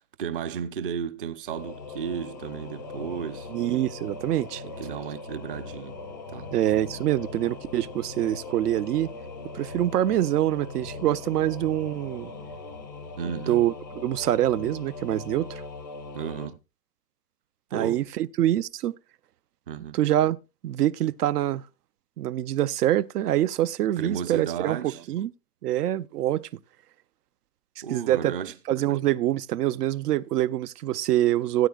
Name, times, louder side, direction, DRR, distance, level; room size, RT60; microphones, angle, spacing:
voice 1, 0.2-3.5 4.6-6.0 6.3-6.5 13.2-13.6 16.1-16.6 17.7-18.0 19.7-20.0 24.0-25.0 27.8-28.5, right 7 dB, 35° right, 0.6 m, -33 dB
Singing / Musical instrument, 1.5-16.5, left 3 dB, 15° left, 0.4 m, -40 dB
voice 2, 3.5-4.6 6.5-9.1 9.5-12.3 13.5-15.6 17.7-18.9 19.9-20.4 20.6-21.6 22.2-25.3 25.6-26.5 27.9-28.3 28.7-31.7, right 13 dB, 75° right, 0.7 m, -25 dB
17.0 x 9.4 x 2.4 m
supercardioid pair, 180°, 47 cm